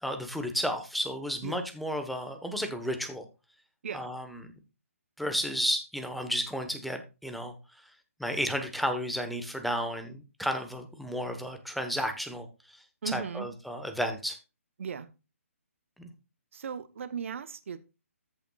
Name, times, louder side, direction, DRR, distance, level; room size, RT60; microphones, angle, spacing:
voice 1, 0.0-3.2 3.9-4.5 5.2-7.9 8.2-14.4 16.0-16.1, equal, ahead, 1.1 m, -33 dB
voice 2, 13.0-13.5 14.8-15.1 16.5-17.8, right 7 dB, 60° right, 0.9 m, -37 dB
14.0 x 6.9 x 2.4 m
hypercardioid pair, 150°, 8 cm